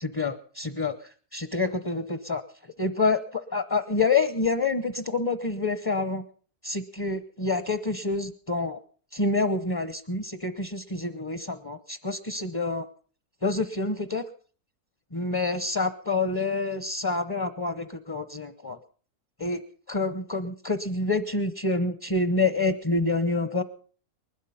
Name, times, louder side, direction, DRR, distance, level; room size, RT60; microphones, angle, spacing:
voice 1, 0.0-1.0 1.3-2.4 2.8-6.2 6.6-8.8 9.1-12.9 13.4-14.2 15.1-18.8 19.4-19.6 19.9-23.6, left 3 dB, 25° left, 11 dB, 0.5 m, -27 dB
20.5 x 12.0 x 5.7 m, 0.43 s
omnidirectional pair, 1.6 m